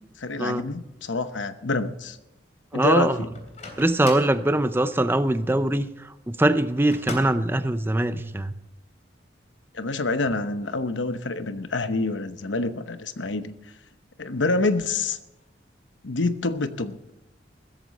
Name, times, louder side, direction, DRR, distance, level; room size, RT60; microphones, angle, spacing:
voice 1, 0.2-2.2 2.7-3.3 9.7-13.5 14.2-15.2 16.0-17.0, left 3 dB, 90° left, 0.9 m, -27 dB
voice 2, 2.7-3.2 3.8-5.9 6.3-8.5, right 1 dB, 10° right, 0.5 m, -22 dB
Microwave oven, 3.3-4.4 6.9-7.5, left 2 dB, 40° left, 3.3 m, -36 dB
16.0 x 14.0 x 4.1 m
head